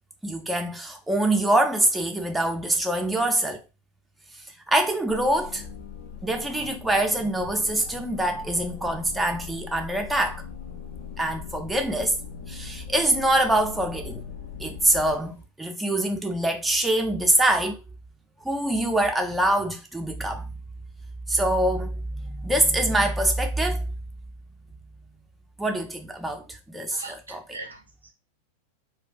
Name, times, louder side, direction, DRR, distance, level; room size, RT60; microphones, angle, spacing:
voice 1, 0.2-3.6 4.7-5.7 6.2-10.4 11.2-12.2 12.5-14.2 14.6-17.8 18.4-20.5 21.3-23.9 25.6-27.0 27.3-27.4, right 1 dB, 5° right, 0.4 m, -24 dB
sound 1, 5.1-15.4, left 7 dB, 55° left, 0.4 m, -40 dB
voice 2, 26.9-28.1, right 2 dB, 80° right, 0.4 m, -41 dB
2.3 x 2.2 x 2.4 m
figure-of-eight pair, 90°, 0 cm